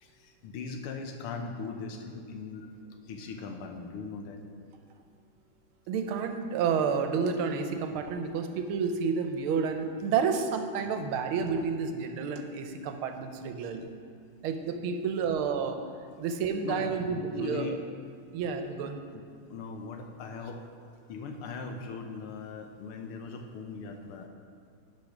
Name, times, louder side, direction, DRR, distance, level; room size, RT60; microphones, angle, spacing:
voice 1, 0.0-2.7 3.1-4.4 14.9-15.0 16.1-16.2 16.6-17.8 18.8-19.2 19.5-20.6 21.1-24.3, left 4 dB, 80° left, 5 dB, 1.8 m, -40 dB
voice 2, 5.9-13.9 14.4-15.8 16.2-17.8 18.3-19.0, right 5 dB, 80° right, 6 dB, 1.5 m, -30 dB
11.0 x 5.0 x 6.0 m, 2.3 s
omnidirectional pair, 2.4 m